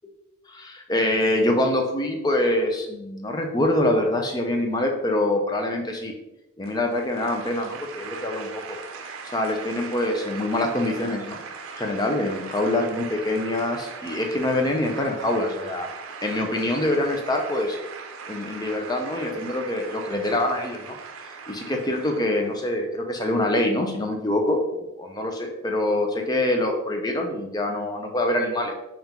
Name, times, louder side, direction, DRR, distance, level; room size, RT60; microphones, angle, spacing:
voice 1, 0.5-6.1 6.6-8.8 9.2-11.4 11.8-15.9 16.2-17.8 18.3-21.0 21.5-28.7, left 1 dB, 20° left, 2 dB, 0.5 m, -25 dB
sound 1, 6.6-22.7, right 5 dB, 90° right, 0.5 m, -39 dB
5.3 x 2.4 x 2.9 m, 0.95 s
head